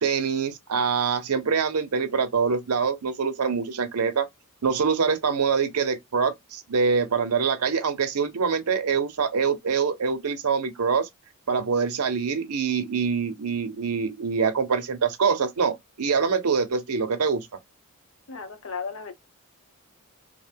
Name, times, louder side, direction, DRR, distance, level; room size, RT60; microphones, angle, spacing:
voice 1, 0.0-4.3 4.6-11.1 11.5-17.5, right 5 dB, 85° right, 0.6 m, -25 dB
voice 2, 18.3-19.1, left 5 dB, 65° left, 0.8 m, -35 dB
2.5 x 2.2 x 3.2 m
head